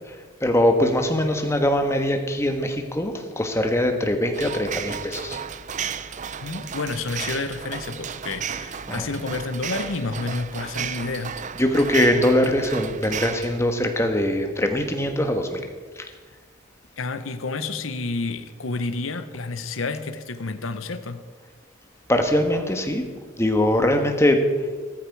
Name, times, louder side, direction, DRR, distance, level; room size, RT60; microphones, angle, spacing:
voice 1, 0.1-5.4 8.9-9.1 11.6-15.7 16.0-16.1 22.1-23.0 23.4-24.5, left 1 dB, 15° left, 5 dB, 1.3 m, -22 dB
sound 1, 4.3-13.6, right 7 dB, 40° right, 0.5 m, -33 dB
voice 2, 6.4-11.4 17.0-21.2, left 3 dB, 85° left, 10 dB, 0.9 m, -30 dB
14.5 x 14.0 x 4.7 m, 1.4 s
head